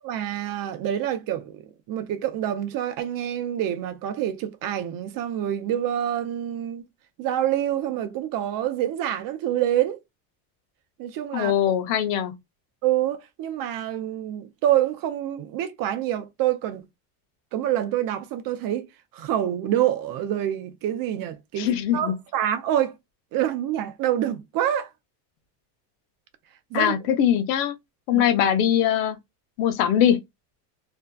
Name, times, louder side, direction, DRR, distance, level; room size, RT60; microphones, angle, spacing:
voice 1, 0.0-1.6 1.9-6.8 7.2-10.0 11.0-11.5 12.8-16.8 17.5-18.9 19.1-23.0 23.3-24.9 26.7-26.9 28.1-28.3, right 11 dB, 45° right, 0.5 m, -26 dB
voice 2, 11.3-12.3 21.6-22.1 26.7-27.7 28.1-29.2 29.6-30.2, left 10 dB, 85° left, 0.7 m, -21 dB
2.6 x 2.2 x 2.2 m
supercardioid pair, 120°, 47 cm